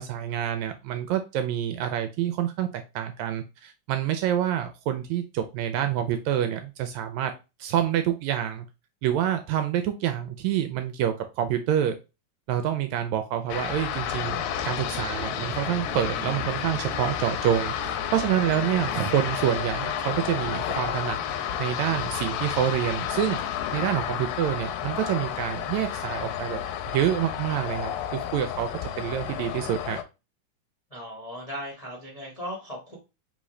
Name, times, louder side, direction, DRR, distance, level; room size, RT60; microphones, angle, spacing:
voice 1, 0.0-7.3 7.6-8.7 9.0-12.0 12.5-26.6 26.9-28.7 29.0-30.0, right 10 dB, 80° right, 7 dB, 1.7 m, -27 dB
sound 1, 13.5-30.0, left 10 dB, 85° left, 2.0 m, -31 dB
sound 2, 13.9-24.1, right 2 dB, 40° right, 1.5 m, -43 dB
voice 2, 30.9-33.0, equal, 25° left, -2 dB, 0.7 m, -37 dB
4.1 x 3.7 x 3.1 m, 0.27 s
omnidirectional pair, 3.5 m